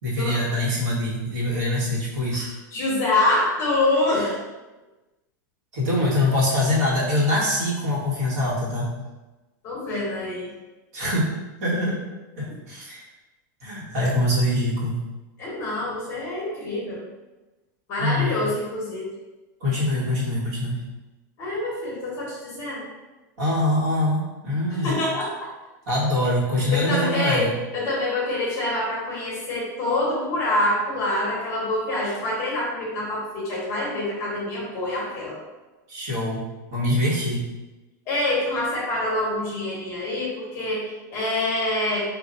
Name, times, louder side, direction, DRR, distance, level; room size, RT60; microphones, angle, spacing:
voice 1, 0.0-2.5 5.7-9.0 10.9-11.3 11.6-12.0 12.4-13.0 13.6-15.0 18.0-18.3 19.6-20.8 23.4-25.0 25.9-27.5 35.9-36.4 36.7-37.5, left 1 dB, 55° right, -5 dB, 1.4 m, -24 dB
voice 2, 2.3-4.4 9.6-10.5 15.4-17.0 17.9-19.0 21.4-22.9 24.7-25.3 26.7-35.4 38.1-42.0, left 2 dB, 25° left, -4 dB, 1.0 m, -26 dB
3.8 x 2.6 x 4.2 m, 1.1 s
supercardioid pair, 180°, 10 cm